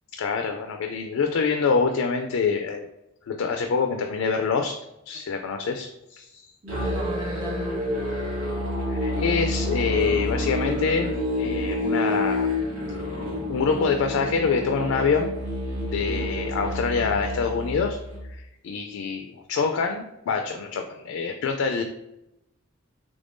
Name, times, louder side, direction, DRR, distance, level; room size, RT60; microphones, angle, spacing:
voice 1, 0.1-2.9 3.3-4.8 5.1-6.5 8.9-11.1 11.4-12.5 13.5-15.3 15.8-18.0 18.3-21.8, left 5 dB, 75° left, 5 dB, 0.3 m, -26 dB
voice 2, 6.6-7.8 9.6-10.3 16.0-16.2 20.3-21.0, equal, 20° right, 2 dB, 0.5 m, -40 dB
Musical instrument, 6.7-18.3, left 1 dB, 90° right, 1.5 m, -28 dB
3.5 x 3.4 x 2.5 m, 0.89 s
head